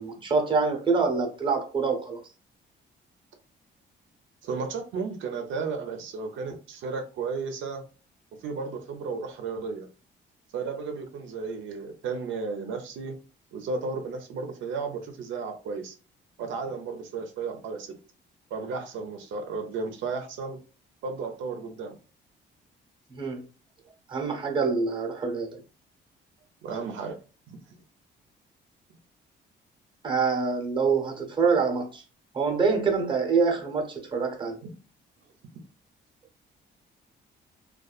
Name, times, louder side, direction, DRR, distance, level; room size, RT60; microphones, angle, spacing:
voice 1, 0.0-2.2 23.1-23.5 24.1-25.6 30.0-32.0 32.3-34.6, right 4 dB, 25° right, 0.7 m, -26 dB
voice 2, 4.4-7.8 8.4-9.9 10.5-13.2 13.5-15.9 16.4-18.0 18.5-20.6 21.0-21.9 26.6-27.2 27.5-27.6 34.6-34.7 35.5-35.6, right 4 dB, 80° right, 0.5 m, -34 dB
2.5 x 2.3 x 2.3 m
cardioid pair, 120°, 19 cm